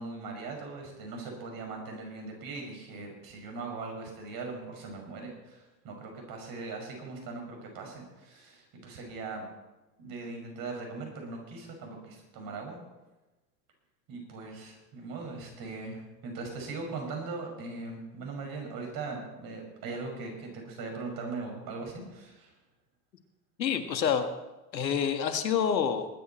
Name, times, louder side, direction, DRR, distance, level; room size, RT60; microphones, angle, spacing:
voice 1, 0.0-9.4 10.0-12.8 14.1-22.5, right 3 dB, 45° right, 2 dB, 5.7 m, -40 dB
voice 2, 23.6-24.3 24.7-26.1, left 7 dB, 90° left, 8 dB, 1.7 m, -27 dB
20.5 x 9.9 x 4.3 m, 1.1 s
hypercardioid pair, 100°, 50 cm